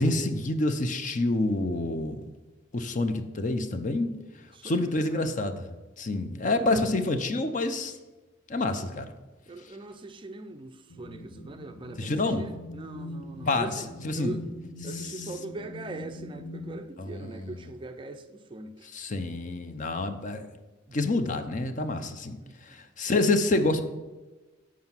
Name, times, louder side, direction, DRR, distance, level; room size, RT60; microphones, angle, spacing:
voice 1, 0.0-2.2 2.7-4.1 4.6-7.9 8.5-9.1 12.0-12.5 13.4-14.3 15.0-15.1 17.0-17.7 18.8-20.5 20.9-22.4 22.7-23.8, left 2 dB, 40° left, 0.6 m, -28 dB
voice 2, 4.5-5.3 6.5-6.9 9.5-13.9 14.1-14.4 14.8-18.9 20.9-21.0 22.4-22.6, right 2 dB, 25° right, 0.4 m, -41 dB
sound 1, 10.9-16.8, left 1 dB, 75° left, 1.3 m, -41 dB
7.8 x 4.7 x 5.6 m
head